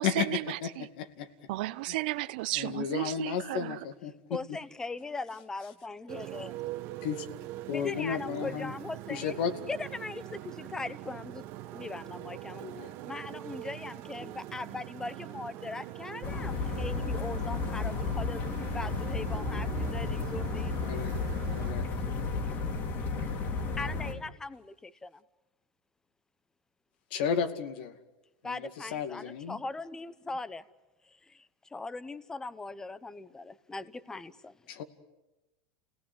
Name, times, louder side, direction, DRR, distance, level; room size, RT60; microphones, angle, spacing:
voice 1, 0.0-0.9 1.5-3.8, right 18 dB, 75° right, 0.9 m, -34 dB
voice 2, 2.6-4.4 7.0-7.3 7.7-8.7 9.1-9.5 12.6-12.9 20.8-21.1 21.5-21.9 27.1-27.9 28.4-29.6 34.7-34.8, left 7 dB, 75° left, 2.3 m, -33 dB
voice 3, 4.3-6.6 7.7-9.4 9.7-11.5 11.7-12.6 13.1-20.7 23.8-25.1 28.4-30.6 31.7-34.5, left 3 dB, 10° left, 0.9 m, -40 dB
Motorcycle, 6.1-21.7, right 15 dB, 55° right, 1.2 m, -43 dB
sound 1, 16.2-24.1, left 3 dB, 50° left, 3.4 m, -33 dB
28.5 x 18.0 x 9.7 m
supercardioid pair, 130°, 5 cm